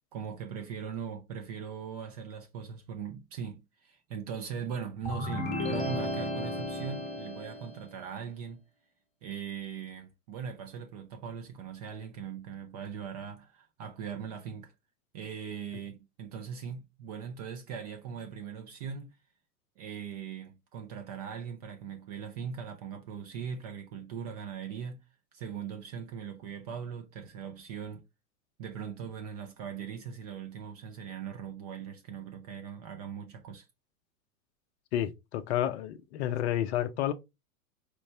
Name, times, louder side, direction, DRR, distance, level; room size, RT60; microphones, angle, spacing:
voice 1, 0.1-8.6 9.2-14.7 15.1-19.2 19.8-25.0 25.3-28.0 28.6-33.7, right 7 dB, 30° right, 0.3 m, -40 dB
sound 1, 5.1-7.9, left 1 dB, 15° left, 0.9 m, -34 dB
voice 2, 34.9-37.1, left 12 dB, 50° left, 0.5 m, -30 dB
4.5 x 2.0 x 2.7 m
hypercardioid pair, 110°, 45 cm